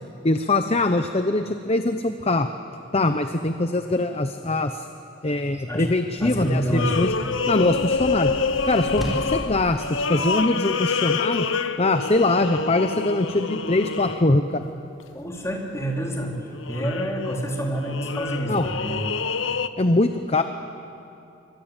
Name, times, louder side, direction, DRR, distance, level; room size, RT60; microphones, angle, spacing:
voice 1, 0.2-2.5 2.9-4.8 5.2-7.1 7.5-8.3 8.6-11.5 11.8-14.7 18.5-18.7 19.8-20.4, left 2 dB, 30° left, 8 dB, 0.8 m, -22 dB
voice 2, 6.2-6.9 15.1-16.3 16.7-19.1, right 1 dB, 15° left, -1 dB, 4.2 m, -27 dB
sound 1, 6.2-9.6, equal, ahead, 5.3 m, -35 dB
sound 2, 6.5-14.5 15.0-15.1 16.4-19.7, left 4 dB, 85° left, 1.0 m, -27 dB
26.0 x 24.5 x 9.0 m, 2.7 s
head